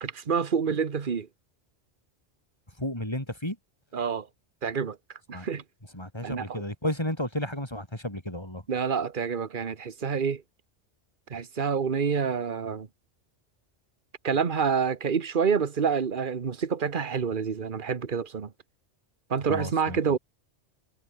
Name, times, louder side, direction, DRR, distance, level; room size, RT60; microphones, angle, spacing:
voice 1, 0.0-1.3 3.9-4.3 4.6-5.0 5.3-5.6 6.2-6.6 8.7-10.4 11.3-12.9 14.2-18.5 19.3-20.2, right 6 dB, 45° right, 1.4 m, -27 dB
voice 2, 2.8-3.6 5.3-5.5 5.9-8.6 19.5-20.0, left 1 dB, 20° left, 4.8 m, -32 dB
omnidirectional pair, 1.2 m